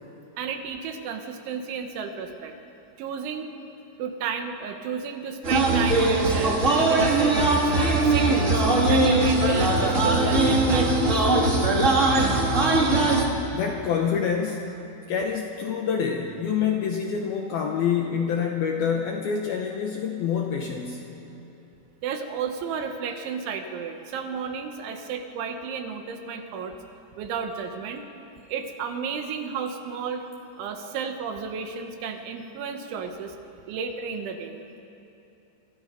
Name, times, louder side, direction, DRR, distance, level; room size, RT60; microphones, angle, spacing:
voice 1, 0.4-2.6 3.0-3.5 4.0-7.7 8.1-11.3 22.0-26.8 27.2-28.0 28.5-30.3 30.6-33.4 33.7-34.6, right 6 dB, 75° right, 5 dB, 3.6 m, -32 dB
sound 1, 5.4-13.2, right 2 dB, 60° right, 0.7 m, -20 dB
voice 2, 13.5-14.7 15.1-21.0, left 7 dB, 70° left, 2 dB, 2.3 m, -26 dB
28.5 x 25.5 x 5.3 m, 2.8 s
omnidirectional pair, 5.8 m